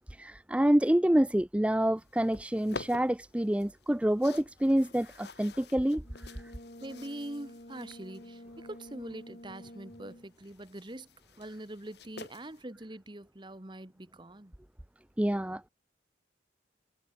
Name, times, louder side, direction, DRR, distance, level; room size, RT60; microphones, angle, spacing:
voice 1, 0.1-6.4 15.2-15.7, right 1 dB, 5° right, 0.4 m, -27 dB
sound 1, 2.0-12.6, left 3 dB, 65° left, 1.4 m, -50 dB
Brass instrument, 6.0-10.4, left 1 dB, 45° left, 4.3 m, -50 dB
voice 2, 6.8-11.1 11.4-14.5, right 1 dB, 25° right, 1.4 m, -43 dB
head